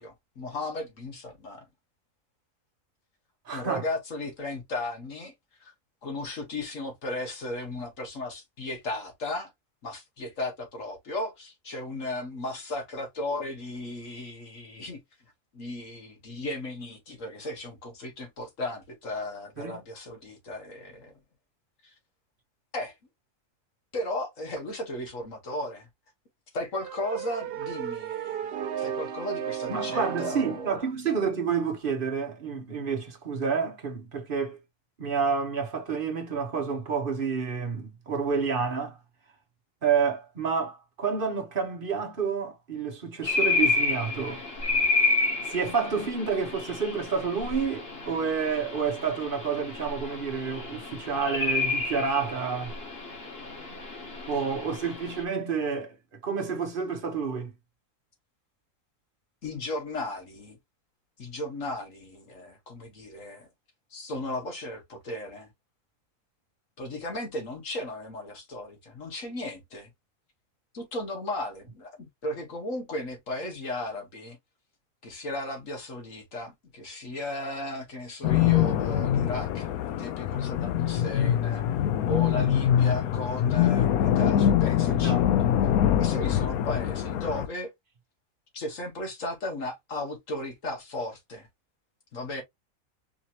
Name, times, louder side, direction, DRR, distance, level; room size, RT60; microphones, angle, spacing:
voice 1, 0.0-1.7 3.5-5.3 5.6-5.7 6.0-9.5 9.8-15.0 15.5-21.1 21.8-21.9 22.7-22.9 23.9-25.9 26.5-30.8 59.4-60.6 61.2-63.5 63.9-65.5 66.8-69.9 70.7-74.4 75.0-81.6 82.0-85.3 86.0-87.7 88.5-91.5 92.1-92.4, left 1 dB, 65° left, 1.9 m, -35 dB
voice 2, 3.5-3.8 19.6-19.8 29.7-34.6 35.0-39.0 39.8-44.4 45.5-52.7 54.2-55.9 56.2-57.5 82.3-82.4 84.9-85.2, right 5 dB, 45° right, 1.1 m, -29 dB
sound 1, 26.8-30.8, right 9 dB, 60° right, 0.6 m, -34 dB
sound 2, 43.2-55.2, left 3 dB, 45° left, 1.6 m, -30 dB
sound 3, 78.2-87.5, left 10 dB, 85° left, 1.1 m, -24 dB
4.8 x 2.9 x 2.9 m
omnidirectional pair, 1.5 m